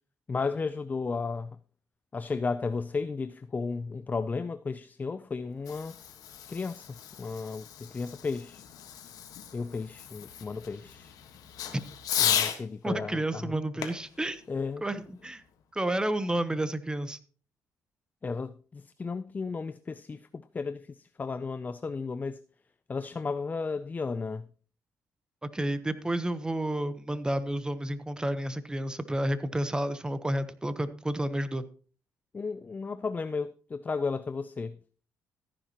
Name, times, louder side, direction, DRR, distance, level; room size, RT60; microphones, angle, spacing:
voice 1, 0.3-1.5 2.1-5.9 6.5-6.9 7.2-8.6 9.5-11.1 12.2-13.5 14.5-14.8 18.2-22.4 22.9-24.4 32.3-34.8, left 4 dB, 25° left, 0.4 m, -34 dB
Fireworks, 5.4-12.6 13.8-15.4, left 9 dB, 75° left, 1.5 m, -35 dB
voice 2, 12.8-14.4 14.8-15.4 15.7-17.2 25.5-31.6, right 1 dB, 10° right, 1.0 m, -30 dB
14.0 x 9.9 x 3.0 m
cardioid pair, 95°, 6 cm